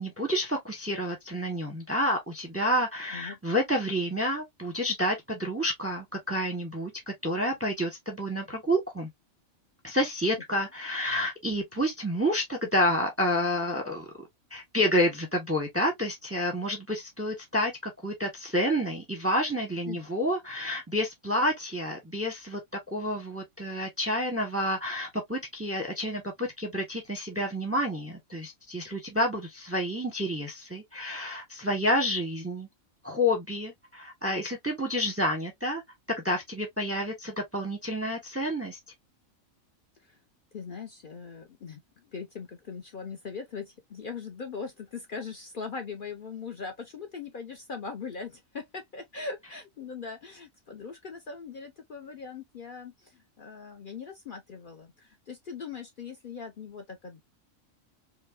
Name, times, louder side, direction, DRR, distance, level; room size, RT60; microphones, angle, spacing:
voice 1, 0.0-9.1 9.8-14.1 14.5-22.6 22.9-32.7 33.0-35.8 36.2-38.8, equal, 15° right, 0.7 m, -29 dB
voice 2, 40.5-57.2, left 5 dB, 50° left, 0.8 m, -40 dB
4.8 x 2.2 x 2.2 m
omnidirectional pair, 1.4 m